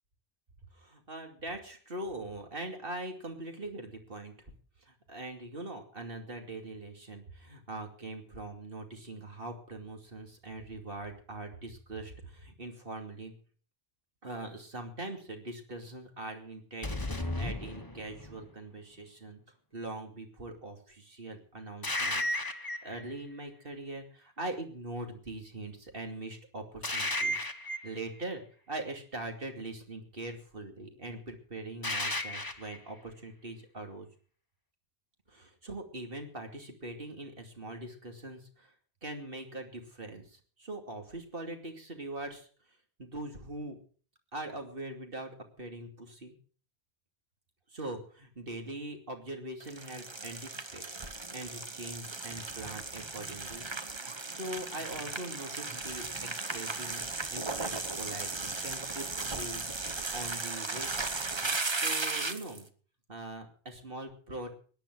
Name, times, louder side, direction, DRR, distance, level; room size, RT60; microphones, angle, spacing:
voice 1, 0.7-4.3 4.8-13.3 14.2-19.4 19.7-27.5 27.8-28.4 28.7-34.1 35.3-38.7 39.0-42.5 43.0-43.8 44.3-46.3 47.7-53.7 54.3-56.1 56.5-59.6 60.1-61.1 61.7-62.7 63.1-64.5, right 2 dB, 60° right, 4 dB, 2.9 m, -42 dB
sound 1, 16.8-18.4 21.8-23.0 26.8-28.0 31.8-32.8, left 1 dB, 20° left, 1.3 m, -34 dB
sound 2, 49.6-62.6, right 3 dB, 25° right, 1.0 m, -36 dB
17.0 x 10.5 x 6.2 m, 0.42 s
omnidirectional pair, 1.1 m